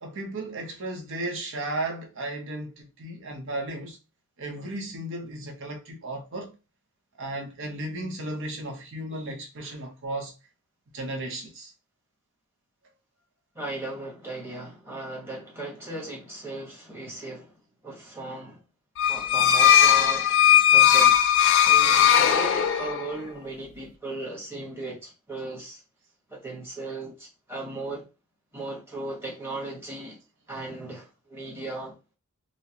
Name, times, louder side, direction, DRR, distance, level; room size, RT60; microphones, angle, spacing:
voice 1, 0.0-4.0 4.4-6.5 7.2-10.3 10.9-11.7, right 1 dB, 60° right, 0.9 m, -34 dB
voice 2, 13.5-17.5 17.8-18.6 19.1-20.4 20.7-21.2 21.6-25.8 26.3-28.0 28.5-30.2 30.5-31.9, right 2 dB, 10° right, 1.3 m, -37 dB
sound 1, 19.0-23.1, left 9 dB, 55° left, 0.4 m, -18 dB
4.1 x 2.1 x 2.8 m
head